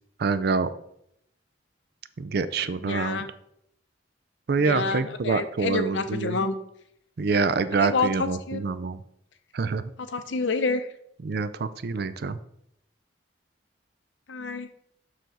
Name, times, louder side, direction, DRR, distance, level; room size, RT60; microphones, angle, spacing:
voice 1, 0.2-0.7 2.2-3.2 4.5-6.4 7.2-9.0 9.5-9.8 11.2-12.4, right 4 dB, 60° right, 13 dB, 0.4 m, -26 dB
voice 2, 2.8-3.3 4.6-6.5 7.3-7.4 7.8-8.1 8.5-8.7 10.1-10.9 14.3-14.7, left 3 dB, 85° left, 10 dB, 0.7 m, -28 dB
6.8 x 6.1 x 4.0 m, 0.74 s
head